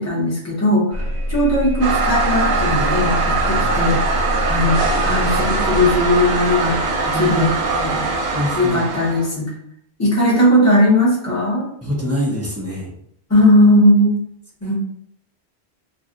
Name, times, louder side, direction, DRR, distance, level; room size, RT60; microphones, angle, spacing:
voice 1, 0.0-4.0 4.4-8.0 8.5-9.5 10.0-11.7 13.3-14.1 14.6-14.8, left 1 dB, 15° left, -6 dB, 0.8 m, -18 dB
sound 1, 0.9-7.8, equal, 85° right, 1.0 m, -25 dB
Toilet flush, 1.8-9.3, right 3 dB, 60° right, 0.8 m, -21 dB
voice 2, 7.0-7.4 7.7-8.8 11.8-12.9 14.6-14.7, equal, 15° right, -4 dB, 0.6 m, -26 dB
2.5 x 2.3 x 3.7 m, 0.68 s
omnidirectional pair, 1.1 m